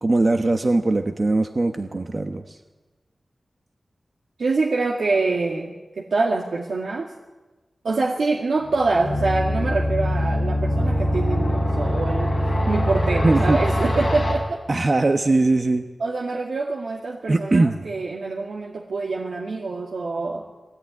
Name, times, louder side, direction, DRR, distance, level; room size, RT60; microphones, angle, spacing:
voice 1, 0.0-2.6 13.2-13.6 14.7-15.9 17.3-17.8, right 2 dB, 40° right, 6 dB, 1.1 m, -20 dB
voice 2, 4.4-7.1 7.8-14.6 16.0-20.4, right 3 dB, 85° right, -2 dB, 2.1 m, -25 dB
sound 1, 8.6-14.3, equal, 20° left, 7.2 m, -23 dB
23.0 x 17.0 x 9.7 m, 1.2 s
wide cardioid pair, 105°, 0 cm